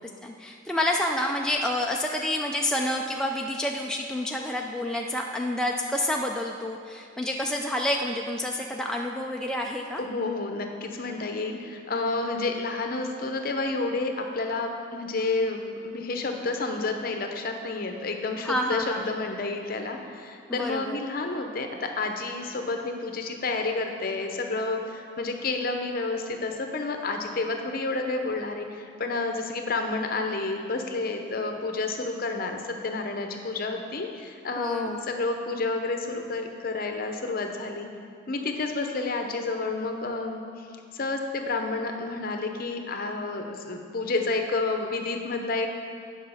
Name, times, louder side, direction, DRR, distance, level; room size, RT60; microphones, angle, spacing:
voice 1, 0.2-10.0 18.4-19.1 20.5-21.0 34.6-35.0, left 1 dB, 5° left, 0 dB, 0.3 m, -28 dB
voice 2, 10.0-37.9 38.3-40.7 40.9-45.7, left 3 dB, 50° left, 4 dB, 0.8 m, -30 dB
9.2 x 5.6 x 5.7 m, 2.4 s
head